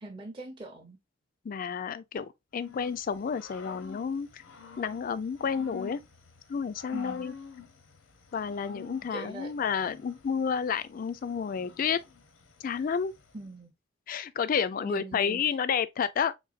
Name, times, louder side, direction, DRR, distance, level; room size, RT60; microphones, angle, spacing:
voice 1, 0.0-1.0 6.9-7.3 9.1-9.5 13.3-13.7 14.8-15.6, right 2 dB, 25° right, 0.6 m, -42 dB
voice 2, 1.4-2.3 2.5-4.4 4.8-6.0 6.5-7.3 8.3-12.0 12.6-13.1 14.1-16.3, left 6 dB, 45° left, 0.3 m, -30 dB
Growling / Cricket, 2.6-13.5, left 7 dB, 80° left, 0.7 m, -50 dB
3.9 x 3.4 x 2.4 m
head